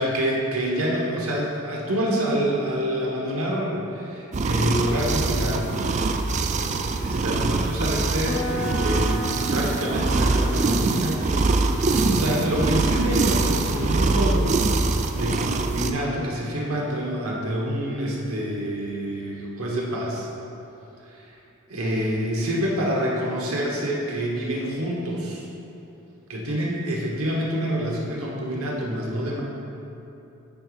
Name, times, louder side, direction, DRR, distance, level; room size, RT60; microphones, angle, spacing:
voice 1, 0.0-5.7 7.0-11.3 11.9-14.6 14.8-20.3 21.1-21.3 21.7-25.4 26.3-29.4, equal, 80° right, -3 dB, 1.3 m, -27 dB
sound 1, 4.3-15.9, right 3 dB, 35° right, 0.3 m, -23 dB
sound 2, 8.2-16.2, equal, 35° left, 1.2 m, -36 dB
sound 3, 9.0-14.0, equal, 15° right, 1.6 m, -41 dB
9.2 x 4.1 x 4.9 m, 2.8 s
head